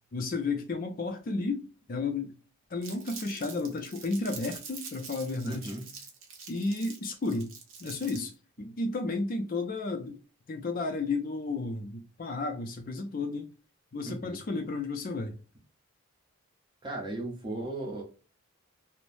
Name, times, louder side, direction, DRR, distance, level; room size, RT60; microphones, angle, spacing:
voice 1, 0.1-2.3 2.7-5.7 6.5-7.5 7.8-8.3 8.6-10.2 10.5-13.5 13.9-15.4, left 3 dB, 40° left, 0.4 m, -32 dB
Crumpling crinkling, 2.8-8.3, right 5 dB, 60° right, 0.9 m, -45 dB
voice 2, 5.4-5.9 14.0-14.4 16.8-18.0, right 2 dB, 20° right, 0.7 m, -36 dB
3.1 x 2.0 x 2.5 m
head